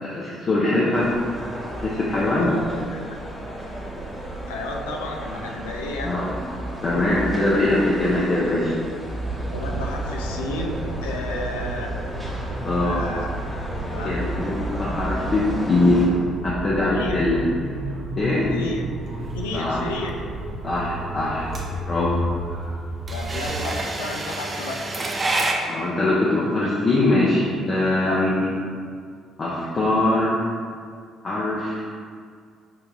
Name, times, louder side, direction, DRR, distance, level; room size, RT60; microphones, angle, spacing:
voice 1, 0.0-1.1 1.8-2.5 6.0-6.2 6.8-8.8 12.6-13.0 14.0-16.1 16.4-17.4 18.2-18.5 19.5-19.8 20.6-21.5 21.9-22.1 25.7-28.5 29.4-30.4 31.2-31.8, left 2 dB, 40° left, -7 dB, 0.6 m, -22 dB
sound 1, 0.9-16.1, right 1 dB, ahead, 1.2 m, -33 dB
voice 2, 2.4-3.2 4.5-6.2 9.5-12.0 12.8-13.3 13.9-14.3 16.8-17.2 18.5-18.9 19.3-20.3 23.1-24.9 28.0-28.2, left 2 dB, 75° left, 0 dB, 0.3 m, -32 dB
sound 2, 9.2-23.6, right 1 dB, 45° right, 0.9 m, -32 dB
sound 3, 19.2-25.5, right 2 dB, 20° right, 0.6 m, -29 dB
5.3 x 2.8 x 2.3 m, 2.1 s
figure-of-eight pair, 50°, 0 cm